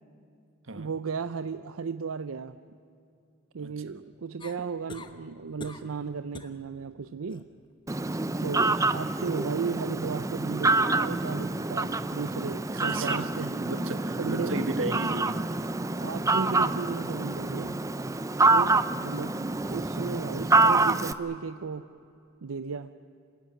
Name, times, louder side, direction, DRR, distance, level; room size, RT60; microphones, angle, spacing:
voice 1, 0.8-2.6 3.5-7.5 8.4-13.7 14.2-14.7 16.0-17.8 18.5-21.9 22.4-22.9, right 5 dB, 85° right, 0.5 m, -35 dB
voice 2, 3.6-4.0 8.6-8.7 12.7-13.3 13.6-15.5, right 2 dB, 70° right, 1.4 m, -35 dB
sound 1, 4.4-5.1 5.6-6.0 6.3-6.6 7.0-7.4 9.3-9.4, left 2 dB, 25° left, 1.1 m, -43 dB
Fowl, 7.9-21.1, right 3 dB, 15° right, 0.5 m, -27 dB
27.0 x 16.5 x 9.4 m
head